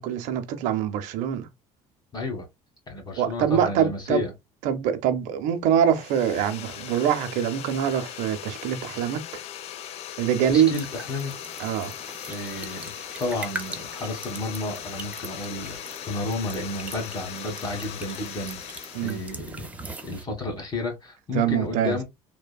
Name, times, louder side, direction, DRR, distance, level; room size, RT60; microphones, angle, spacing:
voice 1, 0.0-1.5 3.2-4.2 4.6-9.2 10.2-10.7 11.6-11.9 18.9-19.2 21.3-22.0, right 9 dB, 75° right, 0.6 m, -24 dB
voice 2, 2.1-2.5 2.9-4.3 10.5-11.3 12.3-12.9 13.2-15.8 16.1-18.6 19.0-19.7 20.0-22.0, left 2 dB, 30° left, 1.4 m, -31 dB
sound 1, 5.9-19.4, left 11 dB, 55° left, 0.4 m, -39 dB
sound 2, 10.7-20.2, right 2 dB, 10° right, 0.6 m, -41 dB
3.3 x 2.2 x 2.2 m
cardioid pair, 120°, 13 cm